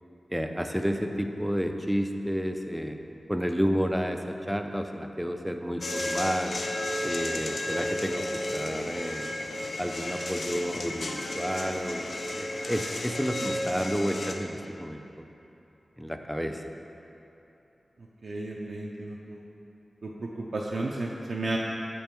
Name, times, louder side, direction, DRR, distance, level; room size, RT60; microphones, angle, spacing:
voice 1, 0.3-3.0 3.3-6.6 7.0-9.3 9.8-12.1 12.4-15.3 16.0-16.6, equal, ahead, 5 dB, 0.4 m, -31 dB
sound 1, 5.8-14.3, left 1 dB, 65° left, 0.5 m, -33 dB
voice 2, 18.2-19.4 20.0-21.6, right 2 dB, 60° right, -3 dB, 0.5 m, -33 dB
6.4 x 5.3 x 4.5 m, 2.9 s
wide cardioid pair, 105°, 0 cm